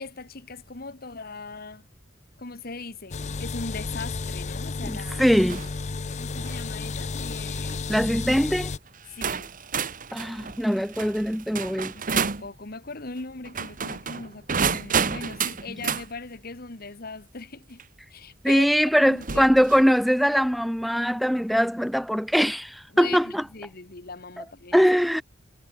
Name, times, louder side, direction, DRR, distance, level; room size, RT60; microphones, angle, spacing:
voice 1, 0.0-1.8 2.4-5.3 6.2-8.0 9.2-9.5 11.9-17.8 18.1-18.7 19.0-19.5 22.9-24.9, left 3 dB, 55° left, 1.6 m, -39 dB
sound 1, 3.1-8.8, left 4 dB, 40° left, 0.5 m, -32 dB
voice 2, 4.8-5.6 7.9-8.7 10.1-11.9 18.4-23.4 24.4-24.5 24.7-25.2, equal, ahead, 1.0 m, -22 dB
sound 2, 5.5-5.8 6.3-6.6 7.5-7.7 8.6-8.7 9.2-12.5 13.4-16.1 17.8-17.9 19.2-19.9, right 6 dB, 45° right, 1.5 m, -30 dB
head